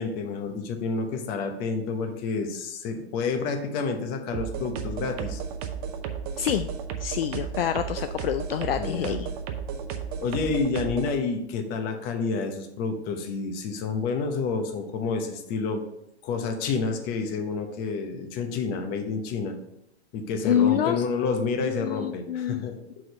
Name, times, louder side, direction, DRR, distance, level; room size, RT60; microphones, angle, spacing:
voice 1, 0.0-5.4 8.8-9.2 10.2-15.8 16.2-19.6 20.1-22.8, left 4 dB, 25° left, 5 dB, 0.9 m, -29 dB
sound 1, 4.3-11.1, right 7 dB, 35° right, 0.8 m, -33 dB
voice 2, 6.4-6.7 7.0-9.3 20.4-21.0 21.6-22.6, left 10 dB, 60° left, 10 dB, 0.5 m, -26 dB
6.1 x 4.9 x 5.4 m, 0.83 s
hypercardioid pair, 140°, 34 cm